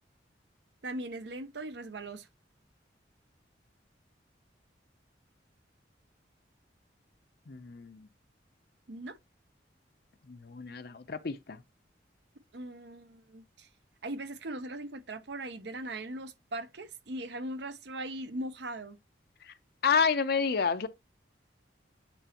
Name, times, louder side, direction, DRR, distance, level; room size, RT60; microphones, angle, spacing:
voice 1, 0.8-2.3 8.9-9.1 12.5-13.7 14.0-19.0, right 1 dB, 70° right, 0.8 m, -39 dB
voice 2, 7.5-8.1 10.3-11.6 19.8-20.9, left 5 dB, 55° left, 0.6 m, -29 dB
9.0 x 4.2 x 2.9 m
head